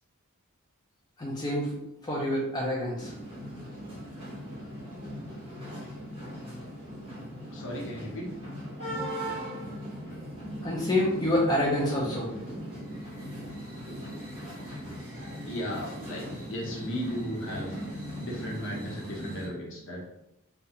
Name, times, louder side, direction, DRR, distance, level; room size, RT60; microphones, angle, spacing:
voice 1, 1.2-1.8 2.0-3.1 10.6-12.3, left 1 dB, 20° left, -4 dB, 0.4 m, -27 dB
sound 1, 3.0-19.5, equal, 25° right, 0.9 m, -39 dB
voice 2, 7.5-8.3 15.4-17.8 18.1-20.0, equal, 60° left, -3 dB, 0.8 m, -36 dB
2.4 x 2.2 x 2.8 m, 0.84 s
head